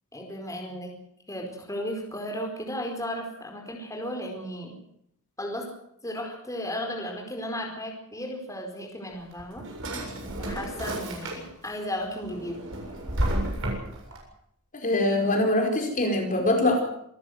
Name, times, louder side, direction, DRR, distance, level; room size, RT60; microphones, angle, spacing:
voice 1, 0.1-0.9 1.3-4.7 5.4-5.7 6.0-9.6 10.4-12.6, equal, 15° left, 1 dB, 4.7 m, -34 dB
Drawer open or close, 9.1-11.7 12.1-14.2, right 1 dB, 60° right, 7.6 m, -32 dB
voice 2, 14.7-16.8, left 1 dB, 35° left, 2 dB, 4.6 m, -23 dB
27.0 x 14.5 x 8.0 m, 0.74 s
head